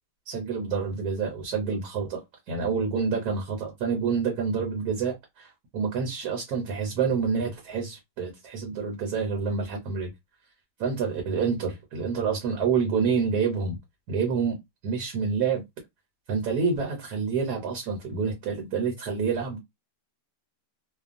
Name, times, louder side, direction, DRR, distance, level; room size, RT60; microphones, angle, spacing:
voice 1, 0.3-10.1 10.8-13.8 14.1-14.6 14.8-15.6 16.3-19.6, right 5 dB, 65° right, 1.3 m, -28 dB
2.9 x 2.2 x 2.5 m
omnidirectional pair, 2.0 m